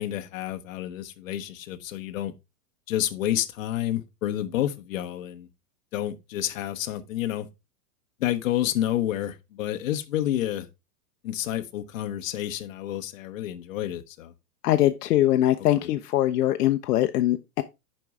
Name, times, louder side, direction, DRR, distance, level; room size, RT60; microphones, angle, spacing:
voice 1, 0.0-2.3 2.9-5.5 5.9-7.5 8.2-10.7 11.2-14.3 15.6-15.9, left 12 dB, 55° left, 1.0 m, -29 dB
voice 2, 14.6-17.6, left 13 dB, 75° left, 0.7 m, -22 dB
9.0 x 5.4 x 3.6 m
supercardioid pair, 175°, 47 cm